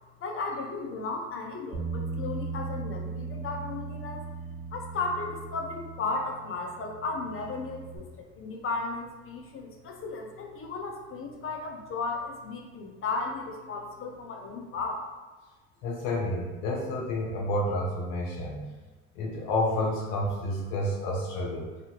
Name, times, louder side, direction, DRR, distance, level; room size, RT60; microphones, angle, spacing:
voice 1, 0.2-4.2 4.7-15.0, left 3 dB, 40° left, 2 dB, 0.6 m, -35 dB
Bass guitar, 1.7-8.0, right 4 dB, 45° right, 1.0 m, -38 dB
voice 2, 15.8-18.7 19.1-21.7, left 1 dB, 85° left, -2 dB, 0.7 m, -30 dB
2.7 x 2.4 x 2.8 m, 1.3 s
supercardioid pair, 65°, 33 cm